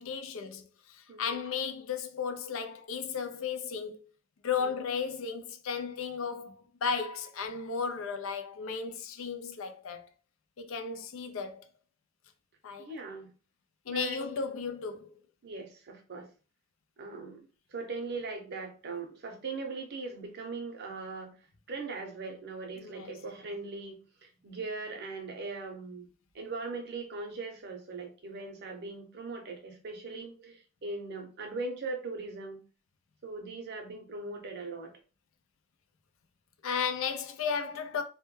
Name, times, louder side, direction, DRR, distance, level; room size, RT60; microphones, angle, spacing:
voice 1, 0.0-4.0 4.4-10.1 10.6-11.6 12.6-12.9 13.9-15.1 22.8-23.1 36.6-38.0, left 6 dB, 65° left, 0.4 m, -34 dB
voice 2, 12.8-13.3 13.9-14.3 15.4-16.3 17.0-21.3 21.7-26.1 26.3-32.6 33.2-35.0, right 3 dB, 50° right, 0.6 m, -40 dB
2.1 x 2.1 x 3.0 m
head